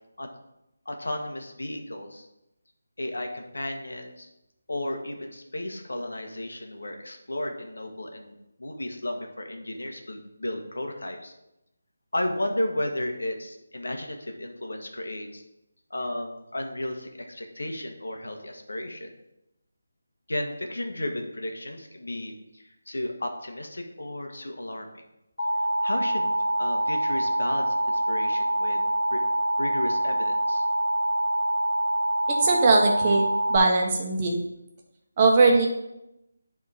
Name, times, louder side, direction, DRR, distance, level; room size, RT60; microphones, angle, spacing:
voice 1, 0.8-2.3 3.0-4.3 4.7-8.3 8.6-11.3 12.1-15.4 15.9-19.1 20.3-25.0 25.8-28.8 29.1-29.2 29.6-30.6, left 1 dB, 80° left, 4 dB, 1.3 m, -33 dB
Alarm, 25.4-33.6, right 1 dB, 60° left, 2.3 m, -25 dB
voice 2, 32.4-33.2 33.5-34.3 35.2-35.7, right 3 dB, 25° right, 0 dB, 1.1 m, -20 dB
9.0 x 3.6 x 4.9 m, 0.88 s
figure-of-eight pair, 165°, 0 cm